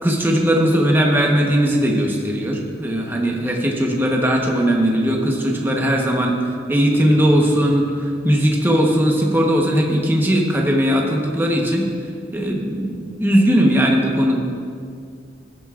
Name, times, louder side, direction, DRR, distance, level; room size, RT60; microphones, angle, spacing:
voice 1, 0.0-11.9 12.3-14.3, equal, 10° right, -1 dB, 1.0 m, -18 dB
16.0 x 9.4 x 2.5 m, 2.3 s
head